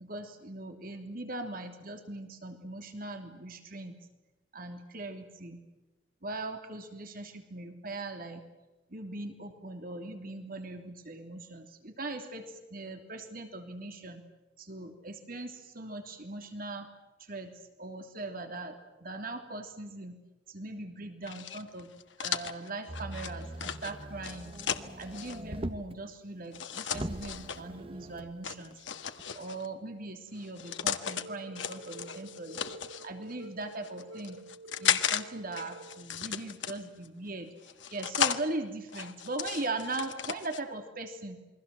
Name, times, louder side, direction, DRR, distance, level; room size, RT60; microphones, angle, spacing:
voice 1, 0.0-4.0 4.5-5.6 6.2-8.4 8.9-14.2 14.6-16.9 17.2-17.5 17.8-20.2 20.5-21.9 22.2-24.6 25.0-28.8 29.3-32.6 32.9-34.4 34.8-37.5 37.9-41.4, right 2 dB, 50° right, 5 dB, 3.1 m, -40 dB
sound 1, 21.2-25.4 26.5-27.6 28.4-29.7 30.4-31.2 31.5-33.1 33.7-35.2 35.5-37.1 37.6-38.4 38.9-40.6, left 8 dB, 80° left, 1.7 m, -34 dB
Motor vehicle (road), 22.9-26.0 26.5-26.6 26.9-28.3 29.2-29.3, right 1 dB, 30° right, 1.2 m, -41 dB
sound 2, 31.0-36.0, right 2 dB, 80° right, 3.7 m, -49 dB
28.5 x 22.5 x 7.8 m, 1.1 s
head